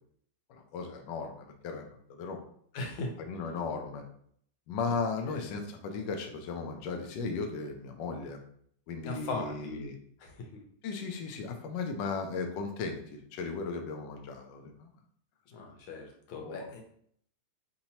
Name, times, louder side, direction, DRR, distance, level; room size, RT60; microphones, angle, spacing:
voice 1, 0.5-2.4 3.2-4.0 4.7-8.4 8.9-10.0 10.8-14.9 16.4-16.7, left 4 dB, 70° left, 3 dB, 1.2 m, -36 dB
voice 2, 2.7-3.1 4.9-5.0 5.3-5.6 9.0-9.9 10.2-10.5 15.5-16.8, left 2 dB, 90° left, 1 dB, 1.7 m, -39 dB
5.4 x 2.8 x 2.9 m, 0.64 s
omnidirectional pair, 2.2 m